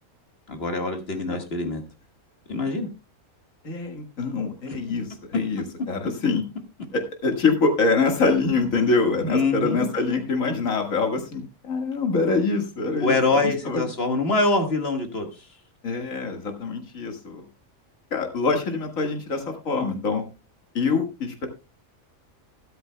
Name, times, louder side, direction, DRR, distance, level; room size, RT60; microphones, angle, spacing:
voice 1, 0.5-1.8 2.5-2.9 9.3-9.9 13.0-15.5, left 3 dB, 50° left, 5 dB, 2.0 m, -24 dB
voice 2, 3.6-6.4 6.9-13.8 15.8-17.4 18.1-20.2 20.7-21.5, left 4 dB, 75° left, 4 dB, 2.2 m, -25 dB
13.5 x 12.5 x 2.2 m, 0.28 s
omnidirectional pair, 1.4 m